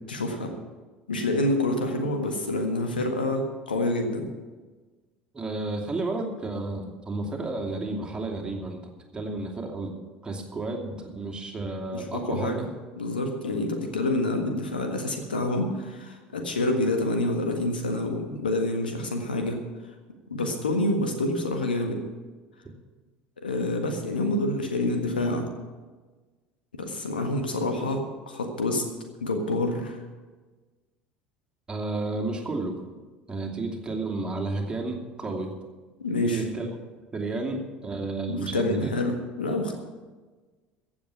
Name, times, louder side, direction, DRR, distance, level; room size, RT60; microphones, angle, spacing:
voice 1, 0.1-0.5 1.1-4.3 11.9-12.6 13.0-19.6 20.3-22.0 23.4-25.5 26.7-28.8 29.2-30.0 36.0-36.4 38.3-39.7, left 2 dB, 80° left, 4 dB, 1.6 m, -27 dB
voice 2, 5.3-9.9 10.2-12.7 31.7-32.8 33.3-35.5 36.2-36.7 37.1-38.9, right 2 dB, 15° right, 1 dB, 2.6 m, -32 dB
15.5 x 7.2 x 8.3 m, 1.3 s
figure-of-eight pair, 65°, 5 cm